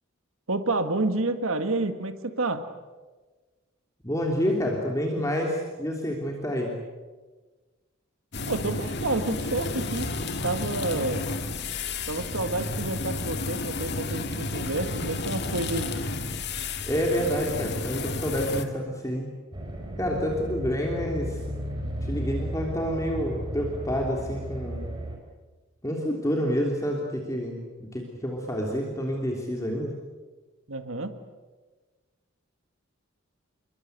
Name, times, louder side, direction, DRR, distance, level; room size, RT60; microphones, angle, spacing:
voice 1, 0.5-2.7 8.5-10.1 10.4-11.3 12.1-16.0 30.7-31.1, right 2 dB, 80° right, 9 dB, 1.7 m, -29 dB
voice 2, 4.0-6.8 16.9-19.3 20.0-21.4 22.0-24.9 25.8-27.6 27.9-29.9, equal, 15° left, 0 dB, 3.2 m, -28 dB
sound 1, 8.3-18.6, left 3 dB, 55° left, 2.0 m, -32 dB
sound 2, 19.5-25.2, equal, 20° right, 4.9 m, -34 dB
28.5 x 22.5 x 8.3 m, 1.3 s
head